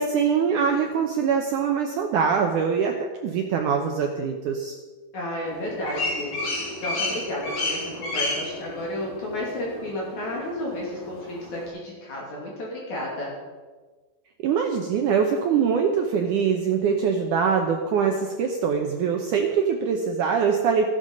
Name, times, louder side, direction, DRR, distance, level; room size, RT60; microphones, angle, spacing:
voice 1, 0.0-2.9 3.2-4.8 14.4-20.9, right 6 dB, 85° right, 3 dB, 1.8 m, -23 dB
voice 2, 5.1-13.3, left 1 dB, 50° left, -3 dB, 3.7 m, -32 dB
sound 1, 5.5-11.7, left 2 dB, 70° left, 5.4 m, -32 dB
14.5 x 11.0 x 5.3 m, 1.3 s
omnidirectional pair, 4.9 m